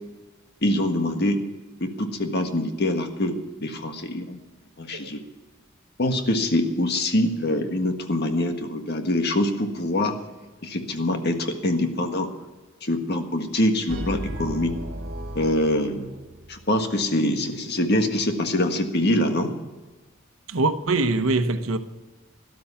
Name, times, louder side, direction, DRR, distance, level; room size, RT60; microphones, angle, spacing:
voice 1, 0.6-1.4 1.8-4.4 4.8-5.2 6.0-10.2 10.6-12.3 12.8-14.7 15.3-16.1 16.5-19.5, left 1 dB, 55° left, 1.6 m, -24 dB
sound 1, 13.9-16.8, right 1 dB, 65° right, 1.6 m, -35 dB
voice 2, 20.5-21.8, right 3 dB, 85° right, 1.0 m, -23 dB
13.0 x 12.5 x 5.7 m
head